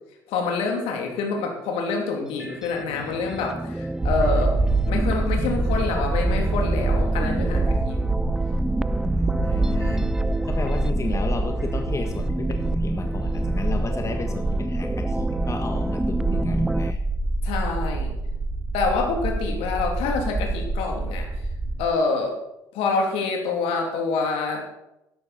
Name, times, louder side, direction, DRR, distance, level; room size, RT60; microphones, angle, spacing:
voice 1, 0.3-4.6 4.9-8.0 17.4-18.1 18.7-21.3 21.8-22.4 22.7-24.7, left 4 dB, 70° left, 2 dB, 2.7 m, -26 dB
sound 1, 2.3-16.9, right 1 dB, 5° right, 0.5 m, -31 dB
sound 2, 4.0-21.9, right 2 dB, 25° right, 1.5 m, -25 dB
voice 2, 9.2-10.1 10.4-17.0, left 4 dB, 30° left, 5 dB, 1.5 m, -33 dB
13.0 x 11.5 x 4.2 m, 0.87 s
hypercardioid pair, 55°, 10 cm